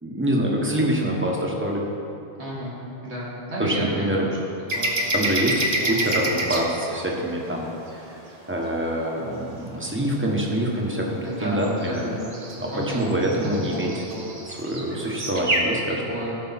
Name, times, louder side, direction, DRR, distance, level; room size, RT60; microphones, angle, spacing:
voice 1, 0.0-1.8 3.6-4.2 5.1-8.0 8.5-12.1 12.6-14.0 14.4-16.0, right 1 dB, 10° right, -2 dB, 1.3 m, -25 dB
voice 2, 2.3-2.7 3.0-4.2 4.7-5.0 11.2-12.3 12.7-13.1 13.4-14.2 15.5-15.6 16.1-16.4, equal, 75° right, -7 dB, 2.5 m, -32 dB
sound 1, 4.7-6.6 11.6-15.6, right 1 dB, 35° right, 1.1 m, -27 dB
15.0 x 6.7 x 4.3 m, 2.8 s
omnidirectional pair, 1.1 m